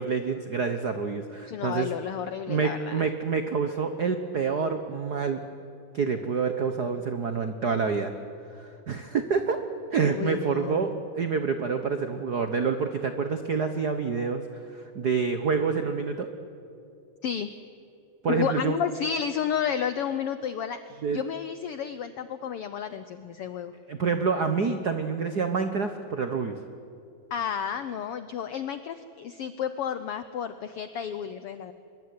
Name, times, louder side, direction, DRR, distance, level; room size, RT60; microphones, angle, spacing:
voice 1, 0.0-1.9 2.5-5.4 5.9-8.1 8.6-9.6 9.9-14.4 14.7-16.3 18.2-18.8 21.0-21.2 23.9-26.6, right 5 dB, 85° right, 7 dB, 0.8 m, -27 dB
voice 2, 1.5-3.0 10.1-10.9 17.2-17.5 18.3-23.7 27.3-31.7, left 8 dB, 80° left, 11 dB, 1.3 m, -31 dB
25.0 x 22.0 x 9.6 m, 2.5 s
omnidirectional pair, 3.6 m